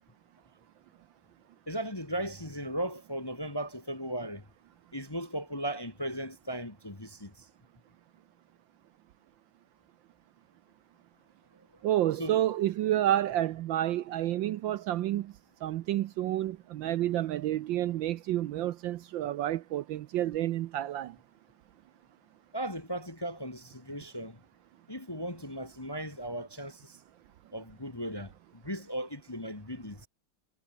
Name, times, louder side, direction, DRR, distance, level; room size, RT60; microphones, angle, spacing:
voice 1, 1.7-4.4 4.9-7.5 12.2-12.4 22.5-24.4 24.9-27.0 27.5-30.1, right 1 dB, 15° left, 1.0 m, -37 dB
voice 2, 11.8-15.3 15.6-21.2, right 13 dB, 70° right, 1.3 m, -29 dB
omnidirectional pair, 2.4 m